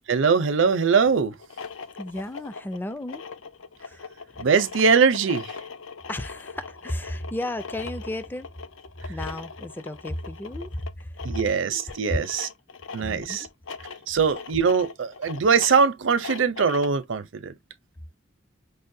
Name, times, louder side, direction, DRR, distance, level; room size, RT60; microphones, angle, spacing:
voice 1, 0.1-1.4 4.4-5.6 11.2-12.5 12.9-13.5 14.1-17.5, right 5 dB, 80° right, 0.6 m, -22 dB
sound 1, 1.3-17.0, left 5 dB, 80° left, 0.5 m, -40 dB
voice 2, 2.0-3.2 3.8-4.1 4.3-4.4 6.1-8.5 9.1-11.2 13.0-13.5, left 1 dB, 10° left, 0.3 m, -34 dB
5.4 x 2.1 x 2.6 m
head